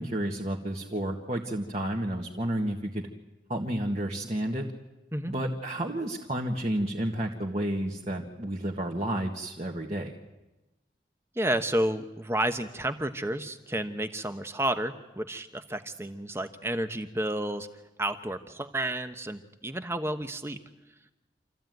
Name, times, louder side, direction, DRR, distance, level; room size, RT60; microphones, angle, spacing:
voice 1, 0.0-3.1 3.5-4.6 5.3-10.1, right 1 dB, 35° right, -1 dB, 1.8 m, -31 dB
voice 2, 11.4-17.7 18.0-20.6, right 1 dB, 15° right, 8 dB, 1.1 m, -31 dB
27.5 x 14.5 x 9.3 m, 1.0 s
head